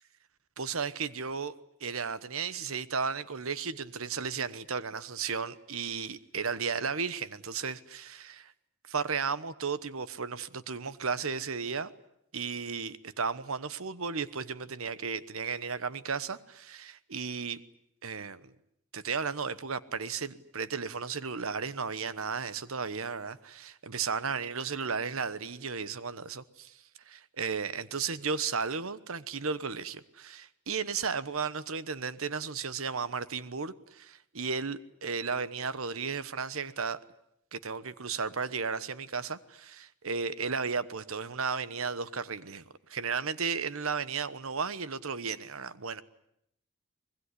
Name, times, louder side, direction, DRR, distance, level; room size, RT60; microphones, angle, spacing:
voice 1, 0.6-1.5 1.8-8.5 8.9-11.9 12.3-17.6 18.0-18.5 18.9-26.8 27.1-37.0 37.5-42.6 42.9-46.0, right 5 dB, 70° right, 1.1 m, -34 dB
25.0 x 21.0 x 9.9 m
head